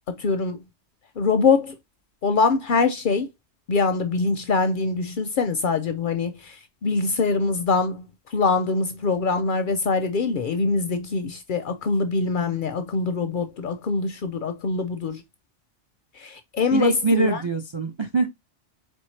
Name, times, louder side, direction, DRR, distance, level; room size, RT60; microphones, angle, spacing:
voice 1, 0.2-0.6 1.2-1.7 2.2-3.3 3.7-6.6 6.8-8.1 8.3-15.2 16.2-17.4, left 4 dB, 60° left, 0.6 m, -23 dB
voice 2, 16.7-18.3, right 3 dB, 50° right, 0.3 m, -23 dB
4.4 x 3.2 x 3.2 m
omnidirectional pair, 1.2 m